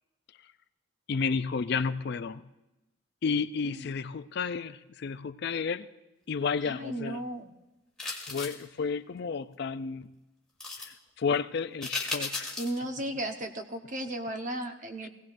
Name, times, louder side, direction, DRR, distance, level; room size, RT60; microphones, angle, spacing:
voice 1, 1.1-2.4 3.2-5.9 6.3-7.2 8.3-10.1 10.8-12.5 15.0-15.1, left 5 dB, 55° left, 13 dB, 0.4 m, -32 dB
voice 2, 6.6-7.5 12.6-15.1, right 1 dB, 40° right, 4 dB, 1.0 m, -35 dB
sound 1, 8.0-8.6 10.6-10.9 11.8-12.8 13.2-13.3, left 3 dB, 5° left, 2.0 m, -35 dB
22.5 x 17.0 x 2.6 m, 0.99 s
head